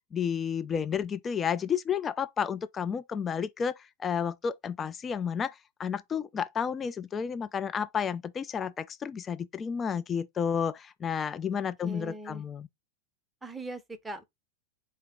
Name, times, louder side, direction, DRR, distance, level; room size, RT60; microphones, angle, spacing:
voice 1, 0.1-12.7, left 7 dB, 20° left, 0.3 m, -31 dB
voice 2, 11.5-12.4 13.4-14.2, right 1 dB, 10° right, 0.7 m, -41 dB
4.4 x 2.8 x 3.5 m
figure-of-eight pair, 90°, 0 cm